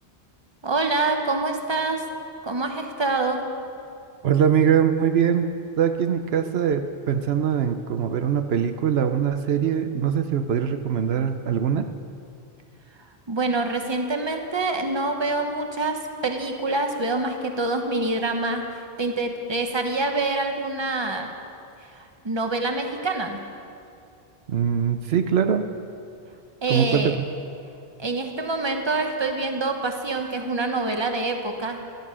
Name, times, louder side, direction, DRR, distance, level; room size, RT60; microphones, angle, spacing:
voice 1, 0.6-2.1 2.4-3.4 13.3-21.3 21.9-23.4 26.6-27.2 28.0-31.8, right 2 dB, 25° right, 4 dB, 1.2 m, -26 dB
voice 2, 4.2-5.4 5.8-11.9 24.5-25.7 26.7-27.3, right 8 dB, 80° right, 8 dB, 0.9 m, -22 dB
15.5 x 12.0 x 6.2 m, 2.5 s
omnidirectional pair, 1.0 m